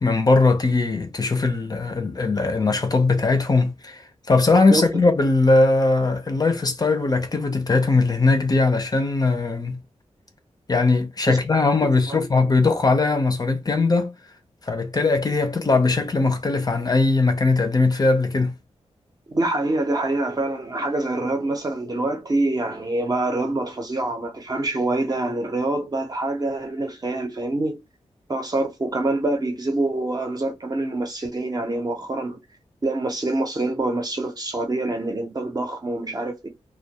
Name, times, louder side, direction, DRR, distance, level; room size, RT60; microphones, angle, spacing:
voice 1, 0.0-9.8 10.7-14.1 14.6-18.5, left 3 dB, 35° left, 0.5 m, -20 dB
voice 2, 19.3-27.8 28.3-32.4 32.8-36.5, right 2 dB, 35° right, 0.6 m, -25 dB
2.2 x 2.2 x 2.7 m
wide cardioid pair, 95°, 12 cm